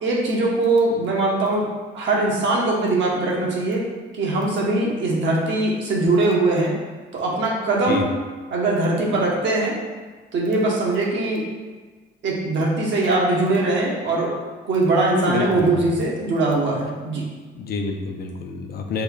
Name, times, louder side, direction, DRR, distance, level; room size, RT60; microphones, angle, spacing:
voice 1, 0.0-1.7 1.9-3.8 4.2-6.7 7.1-8.1 8.5-9.7 10.3-11.4 12.2-14.3 14.6-17.2, right 2 dB, 70° right, -2 dB, 0.9 m, -21 dB
voice 2, 15.1-15.7 17.6-19.0, left 4 dB, 55° left, 4 dB, 0.4 m, -27 dB
3.4 x 2.2 x 3.8 m, 1.4 s
cardioid pair, 90°, 20 cm